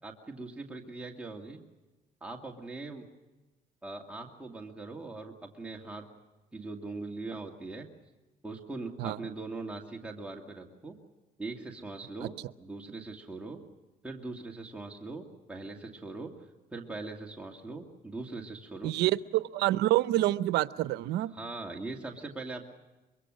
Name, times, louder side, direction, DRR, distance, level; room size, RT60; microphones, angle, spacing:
voice 1, 0.0-1.6 2.2-3.1 3.8-6.0 6.5-7.9 8.4-11.0 11.4-12.3 12.6-13.6 14.0-16.3 16.7-18.9 21.3-22.7, right 3 dB, 5° right, 0 dB, 2.3 m, -41 dB
voice 2, 18.8-21.3, right 15 dB, 80° right, 15 dB, 0.7 m, -27 dB
24.0 x 23.0 x 6.4 m, 1.1 s
cardioid pair, 110°, 17 cm